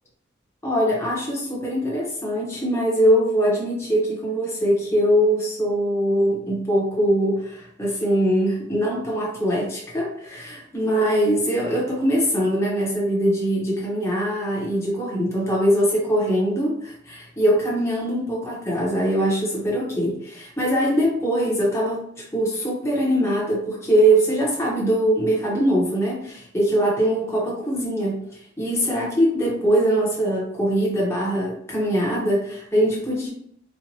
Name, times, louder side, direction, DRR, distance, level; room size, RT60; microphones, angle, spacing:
voice 1, 0.6-22.0 22.3-28.2 28.6-33.3, right 1 dB, 15° left, -5 dB, 1.1 m, -22 dB
4.4 x 2.5 x 2.9 m, 0.70 s
head